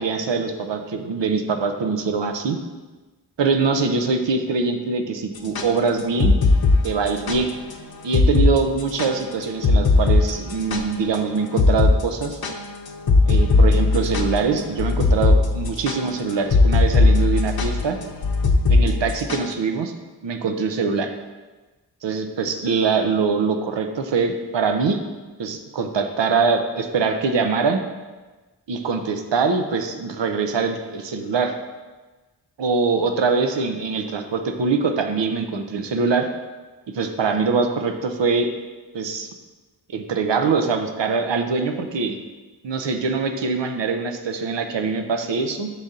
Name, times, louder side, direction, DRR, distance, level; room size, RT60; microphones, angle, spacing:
voice 1, 0.0-2.6 3.4-6.3 6.8-7.5 8.0-12.4 13.3-18.0 18.7-19.9 20.2-21.1 22.0-25.0 25.4-27.8 28.7-31.6 32.6-36.3 36.9-38.5 38.9-39.3 39.9-42.2 42.6-45.7, right 4 dB, 85° right, 6 dB, 0.6 m, -23 dB
sound 1, 5.4-7.4 7.7-7.8 8.1-8.5 8.8-11.2 11.6-12.0 12.2-19.5, left 3 dB, 60° left, 0.6 m, -18 dB
6.7 x 4.1 x 3.7 m, 1.2 s
wide cardioid pair, 80°, 42 cm